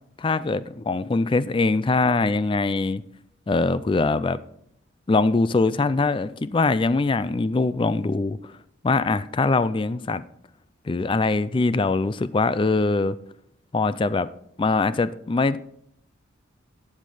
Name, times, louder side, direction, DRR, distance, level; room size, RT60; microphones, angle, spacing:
voice 1, 0.2-3.0 3.5-4.4 5.1-8.5 8.8-10.2 10.9-13.2 13.7-14.3 14.6-15.6, left 3 dB, 25° left, 0.3 m, -22 dB
11.5 x 7.4 x 4.9 m
head